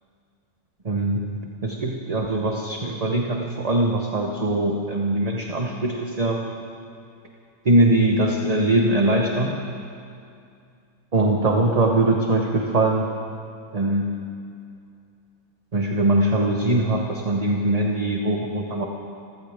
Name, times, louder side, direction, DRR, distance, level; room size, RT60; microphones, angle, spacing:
voice 1, 0.8-1.3 1.6-6.4 7.6-9.6 11.1-13.1 13.7-14.1 15.7-18.8, right 1 dB, 30° right, 1 dB, 0.9 m, -21 dB
26.5 x 15.0 x 3.5 m, 2.5 s
omnidirectional pair, 1.6 m